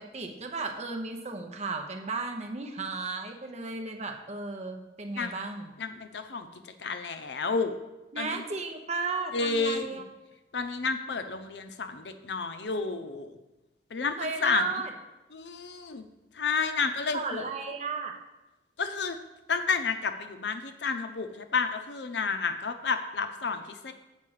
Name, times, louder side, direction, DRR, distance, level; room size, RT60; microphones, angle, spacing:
voice 1, 0.0-5.7 8.1-10.0 14.2-14.9 17.1-18.1, right 3 dB, 40° right, 4 dB, 0.9 m, -34 dB
voice 2, 5.8-6.5 6.8-7.8 8.2-8.4 9.3-10.0 10.5-13.3 13.9-14.6 15.3-16.1 16.3-17.4 18.8-19.2 19.5-23.9, left 4 dB, 70° left, 8 dB, 0.6 m, -31 dB
7.3 x 4.6 x 6.4 m, 1.0 s
head